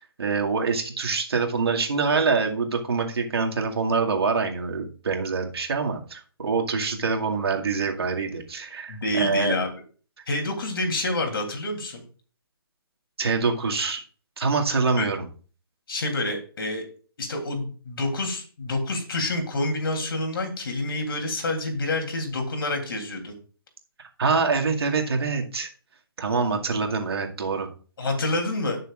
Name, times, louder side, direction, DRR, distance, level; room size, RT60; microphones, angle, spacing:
voice 1, 0.0-9.6 13.2-14.0 14.4-15.2 24.2-25.7 26.2-27.7, right 4 dB, 80° right, 1 dB, 2.2 m, -25 dB
voice 2, 8.9-9.7 10.3-12.0 15.0-15.1 15.9-16.8 17.2-23.3 28.0-28.8, left 2 dB, 65° left, 3 dB, 3.3 m, -28 dB
18.0 x 6.7 x 2.5 m, 0.39 s
hypercardioid pair, 165°, 13 cm